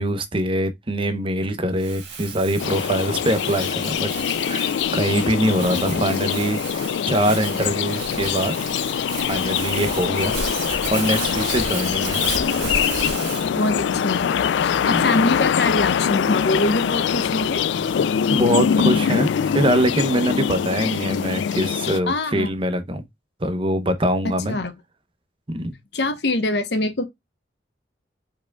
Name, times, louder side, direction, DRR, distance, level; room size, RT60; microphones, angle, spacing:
voice 1, 0.0-4.1 4.5-8.6 9.3-10.3 10.7-12.3 14.9-15.0 18.3-19.3 19.5-23.0 23.4-24.6 25.5-25.7, right 1 dB, 30° right, 0.8 m, -23 dB
Crumpling crinkling, 1.8-13.5, right 5 dB, 90° right, 1.7 m, -33 dB
sound 1, 2.6-22.0, left 8 dB, 85° left, 0.3 m, -23 dB
sound 2, 11.7-20.9, right 1 dB, 50° right, 1.2 m, -42 dB
voice 2, 12.4-12.8 13.5-17.6 22.1-22.5 24.5-24.7 25.9-27.0, left 2 dB, 70° left, 1.0 m, -24 dB
4.9 x 4.5 x 2.3 m
head